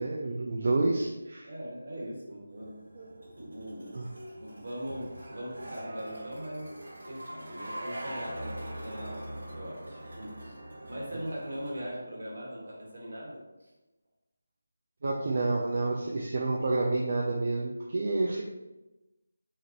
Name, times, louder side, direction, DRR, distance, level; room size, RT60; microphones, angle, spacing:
voice 1, 0.0-1.5 3.0-3.1 3.9-4.1 15.0-18.4, right 2 dB, 35° right, -2 dB, 0.4 m, -29 dB
voice 2, 1.4-2.8 3.4-6.7 7.1-10.6 10.9-13.7, equal, 55° right, -3 dB, 1.5 m, -40 dB
sound 1, 2.6-11.9, right 1 dB, 85° right, 1.3 m, -42 dB
5.9 x 2.5 x 2.8 m, 1.0 s
figure-of-eight pair, 180°, 0 cm